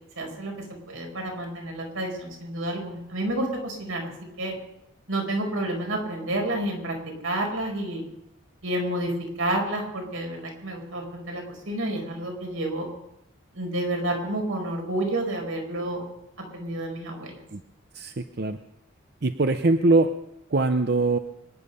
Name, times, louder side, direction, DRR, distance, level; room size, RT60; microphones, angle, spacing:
voice 1, 0.2-0.5 0.9-4.1 4.4-4.5 5.1-7.0 7.2-8.0 8.6-9.1 9.4-12.9 13.5-16.0 16.5-17.4, right 1 dB, 80° right, 1 dB, 4.9 m, -29 dB
voice 2, 17.9-18.6 19.2-20.1 20.5-21.2, right 2 dB, 50° right, 8 dB, 0.6 m, -22 dB
24.0 x 10.5 x 5.5 m, 0.84 s
head